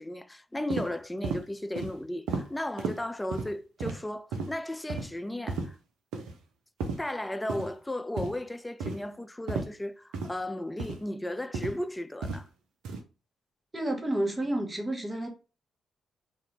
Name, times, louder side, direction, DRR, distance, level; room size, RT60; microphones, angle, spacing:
voice 1, 0.0-5.8 7.0-12.5, left 1 dB, 15° left, 0.3 m, -35 dB
sound 1, 0.7-0.9 1.2-1.4 1.8-1.9 2.3-2.5 2.8-3.0 3.3-3.5 3.8-4.0 4.3-4.5 4.9-5.1 5.5-5.7 6.1-6.3 6.8-7.0 7.5-7.7 8.2-8.4 8.8-9.0 9.5-9.7 10.1-10.3 10.8-11.0 11.5-11.8 12.2-12.4 12.8-13.0, right 4 dB, 75° right, 0.5 m, -33 dB
voice 2, 13.7-15.3, right 1 dB, 20° right, 0.9 m, -30 dB
2.5 x 2.1 x 2.9 m
hypercardioid pair, 45°, 0 cm